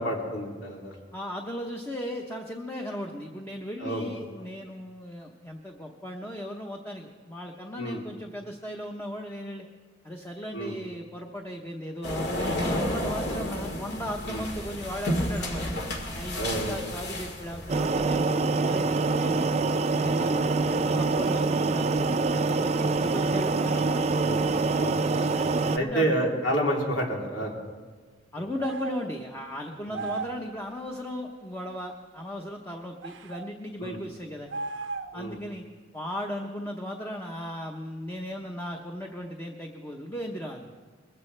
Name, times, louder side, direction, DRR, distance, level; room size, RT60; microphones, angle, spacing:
voice 1, 0.0-0.9 3.8-4.1 7.7-8.0 10.5-10.8 14.2-14.4 16.4-16.8 20.2-20.5 24.2-25.0 25.7-27.5 29.8-30.1 33.8-34.0 35.1-35.4, right 1 dB, 80° left, -1 dB, 3.0 m, -30 dB
voice 2, 1.1-9.7 10.0-15.7 16.1-19.5 20.0-24.2 25.3-26.4 26.7-26.8 28.3-34.5 35.1-35.6 35.9-40.7, equal, 15° left, 2 dB, 0.9 m, -37 dB
sound 1, 12.0-17.9, left 1 dB, 60° left, 2.1 m, -31 dB
sound 2, 17.7-25.8, right 3 dB, 35° right, 0.5 m, -25 dB
sound 3, 28.6-29.1 29.9-30.5 33.0-33.5 34.5-35.3, right 4 dB, 80° right, 0.7 m, -35 dB
21.0 x 15.5 x 3.3 m, 1.4 s
head